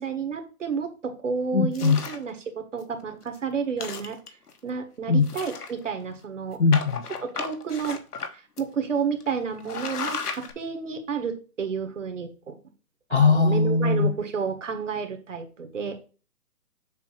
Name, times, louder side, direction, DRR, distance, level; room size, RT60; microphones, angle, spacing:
voice 1, 0.0-4.2 4.6-6.6 7.2-8.0 8.3-12.6 13.1-16.0, right 6 dB, 55° right, 1.6 m, -31 dB
voice 2, 1.5-2.0 5.1-5.3 6.6-7.0 13.1-14.1, left 4 dB, 50° left, 0.5 m, -20 dB
sound 1, 1.7-2.3 2.8-2.9 3.2-3.4 3.7-4.5 5.2-6.0 6.7-8.3 8.6-8.7 9.2-9.3 9.6-10.5, left 5 dB, 85° left, 1.3 m, -34 dB
7.3 x 2.8 x 5.7 m
hypercardioid pair, 175°, 45 cm